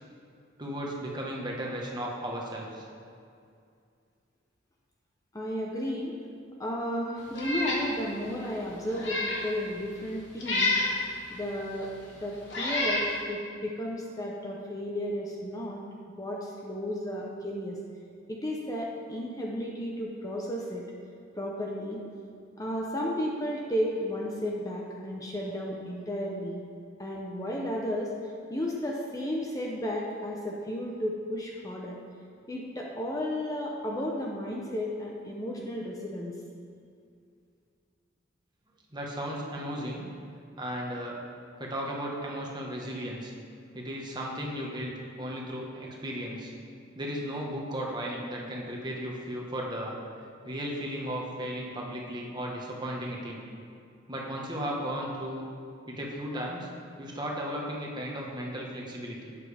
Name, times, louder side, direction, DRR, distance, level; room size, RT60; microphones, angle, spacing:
voice 1, 0.6-2.8 38.9-40.1 40.6-41.2 41.6-43.3 43.7-46.5 46.9-50.0 50.4-53.4 54.1-55.5 55.9-56.7 57.0-59.4, equal, 25° right, -2 dB, 1.4 m, -35 dB
voice 2, 5.3-6.1 6.6-10.8 11.3-11.9 12.2-15.8 16.2-17.8 18.3-20.8 21.3-22.0 22.6-26.6 27.0-32.0 32.5-36.3, equal, 20° left, -2 dB, 0.8 m, -33 dB
Meow, 7.3-7.8 8.3-8.4 8.9-9.4 10.4-10.9 11.8-11.9 12.5-13.1, left 2 dB, 70° left, 1.9 m, -28 dB
12.0 x 8.6 x 3.5 m, 2.4 s
head